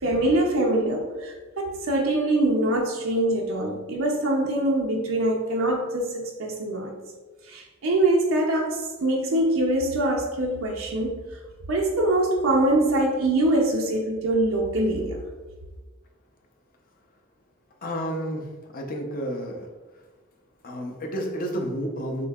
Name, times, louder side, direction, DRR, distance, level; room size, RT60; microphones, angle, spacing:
voice 1, 0.0-6.9 7.5-11.2 11.7-15.2, right 1 dB, 70° right, 0 dB, 0.5 m, -24 dB
voice 2, 17.8-18.4 18.7-19.7 20.6-22.3, equal, 45° left, 2 dB, 0.7 m, -30 dB
6.6 x 2.7 x 2.3 m, 1.3 s
head